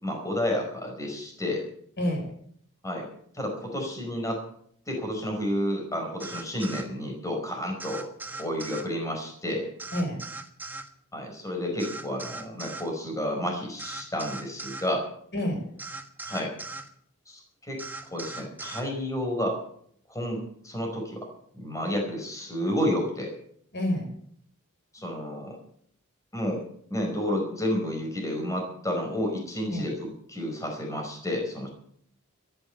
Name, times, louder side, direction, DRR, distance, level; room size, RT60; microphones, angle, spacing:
voice 1, 0.0-1.7 2.8-3.1 3.3-4.4 4.9-8.1 8.4-9.7 11.1-15.1 16.3-16.5 17.3-17.8 18.1-19.6 20.1-21.3 21.6-23.3 24.9-25.6 26.3-26.6 26.9-31.7, left 1 dB, 15° left, 2 dB, 4.9 m, -30 dB
voice 2, 2.0-2.3 9.9-10.2 15.3-15.7 23.7-24.1 29.7-29.9, left 1 dB, 50° left, 4 dB, 5.8 m, -28 dB
sound 1, 6.2-6.9 7.8-8.9 9.8-10.9 11.8-12.9 13.8-14.9 15.8-16.9 17.8-18.9, right 2 dB, 10° right, 1.3 m, -39 dB
14.0 x 11.0 x 8.5 m, 0.64 s
head